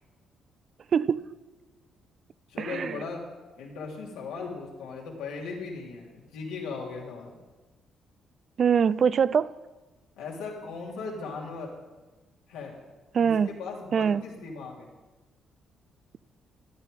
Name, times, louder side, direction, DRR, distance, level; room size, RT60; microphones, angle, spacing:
voice 1, 0.9-1.3 2.6-3.0 8.6-9.5 13.1-13.5 13.9-14.2, right 7 dB, 55° right, 18 dB, 0.4 m, -23 dB
voice 2, 2.5-3.3 3.6-7.4 10.2-11.7 12.5-12.7 13.2-14.9, left 4 dB, 90° left, -2 dB, 3.0 m, -38 dB
14.0 x 11.0 x 5.2 m, 1.2 s
supercardioid pair, 65°, 0 cm